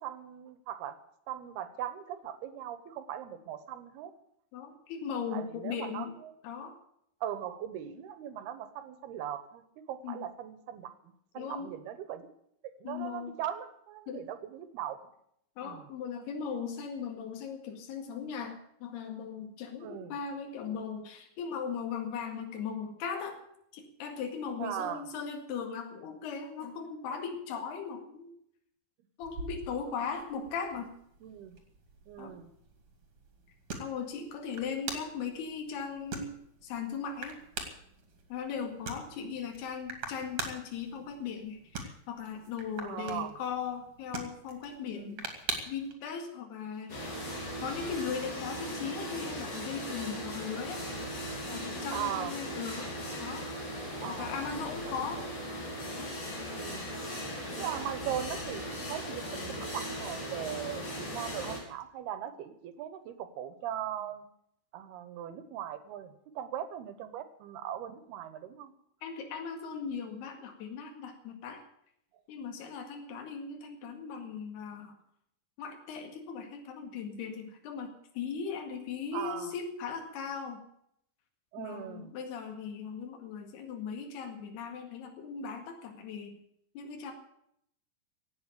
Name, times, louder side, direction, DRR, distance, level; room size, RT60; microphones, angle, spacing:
voice 1, 0.0-1.0 1.3-4.1 5.3-6.3 7.2-12.3 12.8-15.0 15.6-15.9 19.8-20.2 24.6-25.1 31.2-31.6 32.1-32.5 42.8-43.4 44.9-45.2 51.9-52.3 54.0-54.3 54.9-55.3 56.5-56.9 57.6-64.3 64.7-68.7 79.1-79.5 81.5-82.2, right 10 dB, 75° right, 12 dB, 3.1 m, -39 dB
voice 2, 4.5-6.1 6.4-6.8 10.0-10.3 11.4-11.7 12.8-13.4 14.1-14.2 15.6-23.4 23.7-28.3 29.2-30.9 32.2-32.4 33.8-36.3 36.6-37.4 38.3-47.2 47.6-50.8 51.5-53.5 54.1-55.2 56.0-56.1 69.0-71.6 72.3-75.0 75.6-80.6 81.6-86.4 86.8-87.1, left 6 dB, 75° left, 3 dB, 4.0 m, -38 dB
sound 1, 29.2-45.9, right 4 dB, 40° right, 3.0 m, -44 dB
sound 2, 46.9-61.6, equal, 40° left, 5.2 m, -38 dB
17.5 x 8.2 x 8.4 m, 0.72 s
omnidirectional pair, 4.7 m